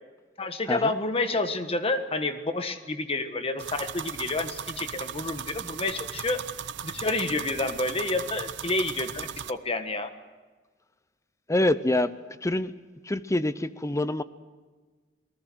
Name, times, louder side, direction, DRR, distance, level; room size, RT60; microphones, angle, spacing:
voice 1, 0.4-6.4 6.8-10.1, left 2 dB, 35° left, 8 dB, 1.5 m, -29 dB
sound 1, 3.6-9.5, right 8 dB, 85° right, 0.8 m, -37 dB
voice 2, 11.5-12.1 12.4-12.7 13.0-14.2, left 1 dB, 15° left, 14 dB, 0.7 m, -25 dB
28.0 x 19.5 x 6.3 m, 1.3 s
head